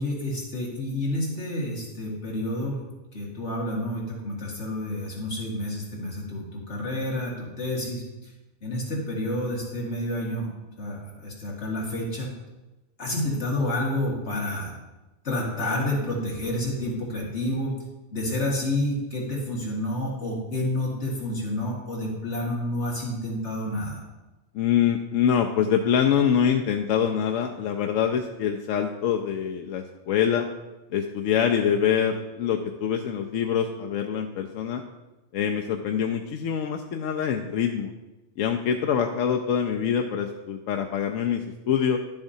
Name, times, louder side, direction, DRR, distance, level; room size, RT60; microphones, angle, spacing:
voice 1, 0.0-2.8 3.1-8.3 8.6-10.5 10.8-12.3 13.0-14.7 15.2-17.7 18.1-24.0, left 1 dB, 60° left, -3 dB, 2.2 m, -29 dB
voice 2, 24.5-30.5 30.9-34.8 35.3-37.9 38.4-42.0, left 8 dB, 85° left, 3 dB, 1.0 m, -25 dB
11.0 x 7.1 x 2.7 m, 1.1 s
omnidirectional pair, 1.3 m